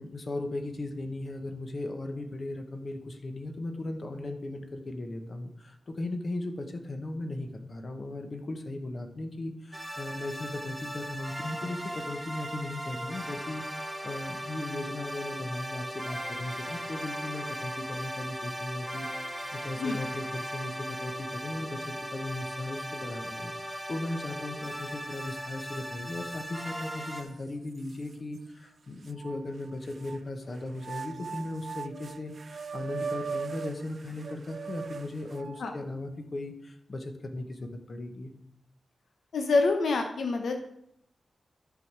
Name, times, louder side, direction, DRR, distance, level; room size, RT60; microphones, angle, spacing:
voice 1, 0.0-38.3, left 2 dB, 40° left, 5 dB, 1.1 m, -37 dB
sound 1, 9.7-27.2, equal, ahead, 1.0 m, -38 dB
sound 2, 25.7-25.8 26.3-27.2 27.9-28.0 29.1-30.2 30.8-35.7, right 5 dB, 55° right, 0.3 m, -39 dB
voice 2, 39.3-40.7, left 3 dB, 85° left, 4 dB, 1.0 m, -26 dB
10.5 x 5.8 x 4.7 m, 0.73 s
wide cardioid pair, 155°, 0 cm